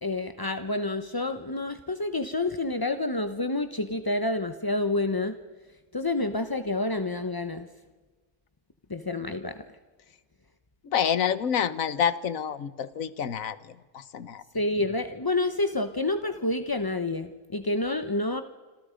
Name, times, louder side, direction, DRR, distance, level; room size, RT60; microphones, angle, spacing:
voice 1, 0.0-5.3 5.9-7.7 8.9-9.6 14.5-18.4, left 2 dB, 25° left, 9 dB, 0.5 m, -28 dB
voice 2, 10.8-13.6 13.9-14.4, left 8 dB, 55° left, 15 dB, 1.4 m, -27 dB
27.5 x 27.0 x 5.2 m, 1.3 s
omnidirectional pair, 1.8 m